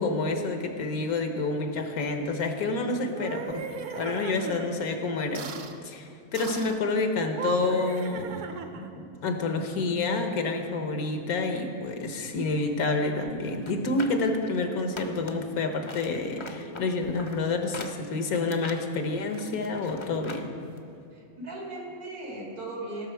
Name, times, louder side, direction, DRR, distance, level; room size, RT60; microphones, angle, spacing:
voice 1, 0.0-3.6 3.9-5.5 5.8-20.5, left 3 dB, 85° left, 5 dB, 1.4 m, -29 dB
sound 1, 3.0-4.7 5.3-5.8 6.3-6.8 7.2-9.0, right 6 dB, 65° right, 1.0 m, -37 dB
sound 2, 13.5-15.5 15.8-20.5 20.8-20.9, left 3 dB, 45° left, 0.3 m, -42 dB
voice 2, 21.1-23.1, right 2 dB, 90° right, -2 dB, 2.6 m, -38 dB
16.5 x 6.3 x 4.6 m, 2.5 s
omnidirectional pair, 1.5 m